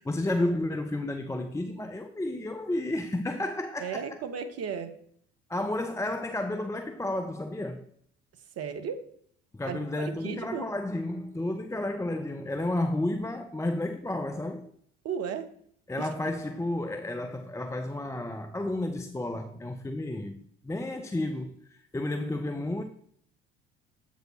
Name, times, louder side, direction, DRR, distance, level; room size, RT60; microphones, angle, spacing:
voice 1, 0.0-4.1 5.5-7.9 9.5-14.7 15.9-22.8, left 1 dB, 10° left, 0.6 m, -32 dB
voice 2, 3.8-4.9 8.6-9.0 9.7-10.7 15.0-15.5 16.0-16.1, right 7 dB, 45° right, 1.0 m, -35 dB
7.8 x 4.7 x 4.0 m
hypercardioid pair, 60°, 36 cm